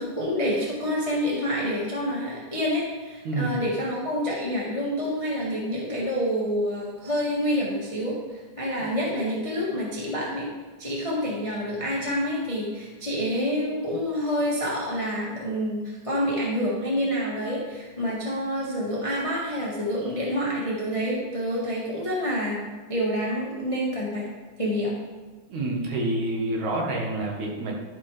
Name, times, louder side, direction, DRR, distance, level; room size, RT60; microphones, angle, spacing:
voice 1, 0.0-8.1 8.6-10.5 10.8-24.3 24.6-24.9, equal, 20° left, -5 dB, 0.8 m, -27 dB
voice 2, 3.2-3.6 8.8-8.9 25.5-27.7, right 2 dB, 70° right, -1 dB, 2.8 m, -28 dB
12.0 x 4.8 x 4.9 m, 1.4 s
omnidirectional pair, 3.6 m